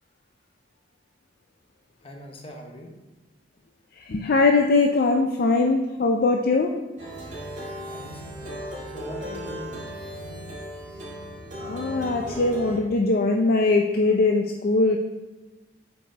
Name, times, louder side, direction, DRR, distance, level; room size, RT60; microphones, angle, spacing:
voice 1, 2.0-2.9 7.9-8.6 8.9-10.1, equal, 30° left, 1 dB, 1.1 m, -41 dB
voice 2, 4.0-6.8 11.6-15.0, left 3 dB, 55° left, 3 dB, 0.5 m, -21 dB
Plucked string instrument, 7.0-12.8, equal, 40° right, 2.3 m, -37 dB
7.3 x 4.8 x 3.9 m, 1.1 s
head